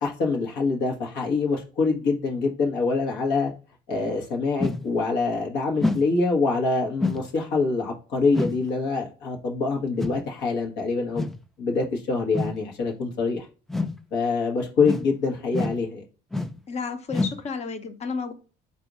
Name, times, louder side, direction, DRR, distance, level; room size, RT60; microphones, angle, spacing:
voice 1, 0.0-3.5 3.9-11.3 11.6-13.4 14.1-16.0, left 4 dB, 85° left, 1.3 m, -25 dB
sound 1, 4.6-4.9 5.8-6.1 7.0-7.3 8.3-8.6 10.0-10.2 11.2-11.4 12.3-12.6 13.7-14.0 14.8-15.1 15.5-15.8 16.3-16.6 17.1-17.4, left 2 dB, ahead, 0.4 m, -27 dB
voice 2, 16.7-18.3, left 5 dB, 40° left, 0.8 m, -32 dB
4.0 x 2.7 x 4.7 m
cardioid pair, 110°, 17 cm